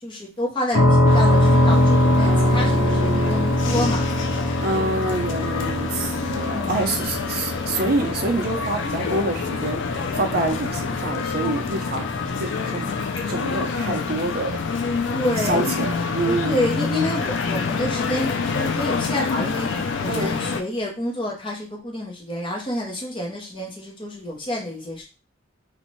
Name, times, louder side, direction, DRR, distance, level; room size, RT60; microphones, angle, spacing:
voice 1, 0.0-4.1 6.5-6.8 14.9-15.7 16.2-25.0, left 1 dB, 25° left, 0.6 m, -28 dB
sound 1, 0.7-14.4, left 1 dB, 85° left, 0.8 m, -23 dB
sound 2, 1.1-20.6, left 5 dB, 60° left, 0.3 m, -27 dB
voice 2, 2.2-3.5 4.6-12.9 13.3-14.5 15.4-16.7 20.1-20.3, right 2 dB, 45° right, 0.5 m, -27 dB
2.6 x 2.1 x 3.0 m
head